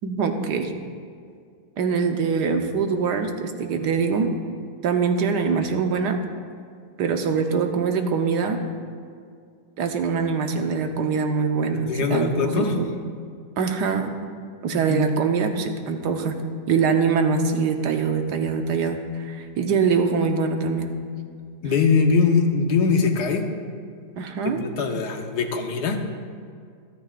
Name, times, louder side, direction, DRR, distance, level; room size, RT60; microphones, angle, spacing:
voice 1, 0.0-0.7 1.8-4.3 4.8-6.2 7.0-8.6 9.8-12.9 13.6-14.1 14.6-16.4 16.7-20.9 21.6-21.7 24.2-24.6, right 5 dB, 90° right, 5 dB, 1.5 m, -23 dB
voice 2, 11.7-12.8 14.7-15.2 21.6-23.5 24.4-26.0, left 5 dB, 80° left, 4 dB, 1.6 m, -22 dB
25.5 x 9.7 x 2.5 m, 2.2 s
omnidirectional pair, 1.7 m